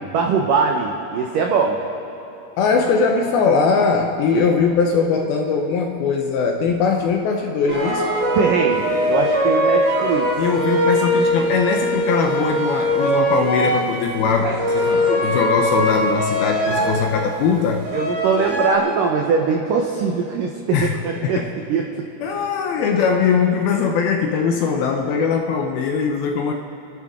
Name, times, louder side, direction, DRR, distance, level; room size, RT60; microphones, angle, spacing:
voice 1, 0.0-1.8 4.3-4.4 8.3-10.3 17.9-21.4 21.7-22.0, right 5 dB, 85° right, 1 dB, 1.9 m, -21 dB
voice 2, 2.6-8.2 10.4-17.9 20.7-21.5 22.2-26.5, left 5 dB, 75° left, 3 dB, 2.3 m, -20 dB
sound 1, 7.7-13.9 14.4-17.3 17.8-18.7, equal, 20° right, 3.1 m, -21 dB
28.5 x 12.0 x 3.6 m, 3.0 s
omnidirectional pair, 5.0 m